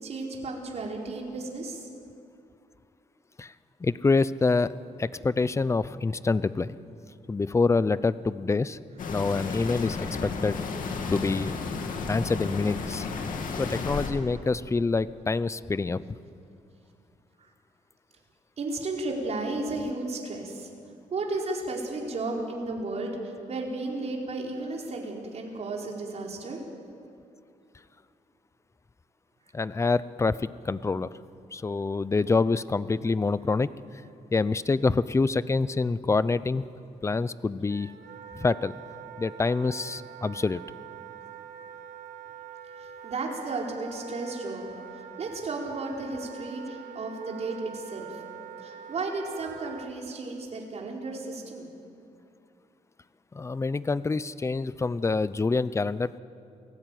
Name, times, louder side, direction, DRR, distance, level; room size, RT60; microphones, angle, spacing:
voice 1, 0.0-1.9 17.4-17.5 18.6-20.7 21.1-26.6 42.8-44.7 44.9-48.2 48.6-51.7, right 2 dB, 50° right, -1 dB, 4.7 m, -34 dB
voice 2, 3.8-4.7 5.0-6.8 7.3-8.8 9.1-10.6 11.1-11.5 12.1-13.1 13.6-16.2 29.5-31.1 31.5-33.7 34.3-36.6 37.0-37.9 38.3-38.7 39.2-40.6 53.3-56.2, left 3 dB, 20° left, 16 dB, 0.6 m, -26 dB
sound 1, 9.0-14.1, left 4 dB, 80° left, 2.7 m, -33 dB
Wind instrument woodwind instrument, 37.7-49.9, right 8 dB, 90° right, 1.5 m, -44 dB
28.5 x 17.5 x 9.4 m, 2.6 s
cardioid pair, 125°, 14 cm